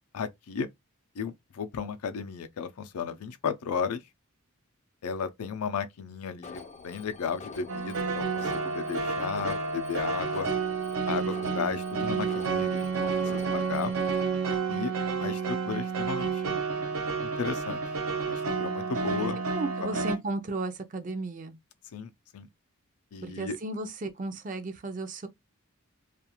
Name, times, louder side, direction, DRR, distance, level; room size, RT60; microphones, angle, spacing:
voice 1, 0.1-0.7 1.1-4.0 5.0-10.5 11.1-13.9 14.7-14.9 15.2-16.6 17.2-17.8 18.2-19.4 19.8-20.1 21.9-22.5 23.1-23.6, left 6 dB, 90° left, 0.5 m, -34 dB
Alarm, 6.4-14.2, left 4 dB, 30° left, 0.3 m, -46 dB
sound 1, 7.7-20.2, right 5 dB, 85° right, 0.6 m, -30 dB
voice 2, 19.5-21.6 23.2-25.3, right 2 dB, 35° right, 0.4 m, -34 dB
2.4 x 2.3 x 2.9 m
head